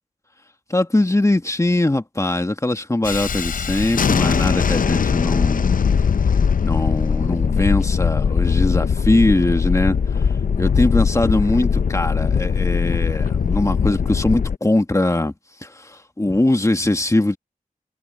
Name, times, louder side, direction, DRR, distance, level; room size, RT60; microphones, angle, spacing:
voice 1, 0.7-5.7 6.6-10.3 10.6-15.3 15.6-17.4, left 2 dB, 20° left, 1.8 m, -21 dB
Thunderstorm, 3.0-14.6, left 6 dB, 70° left, 0.6 m, -20 dB
cardioid pair, 55°, 15 cm